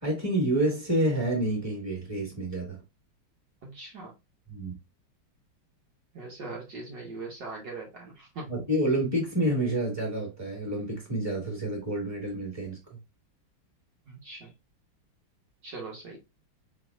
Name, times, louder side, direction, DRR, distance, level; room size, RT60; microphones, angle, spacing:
voice 1, 0.0-2.8 4.5-4.7 8.5-12.8, right 1 dB, 10° right, 2.2 m, -28 dB
voice 2, 3.6-4.1 6.1-8.6 14.1-14.5 15.6-16.2, right 3 dB, 60° right, 1.9 m, -41 dB
4.4 x 3.9 x 2.3 m
omnidirectional pair, 2.3 m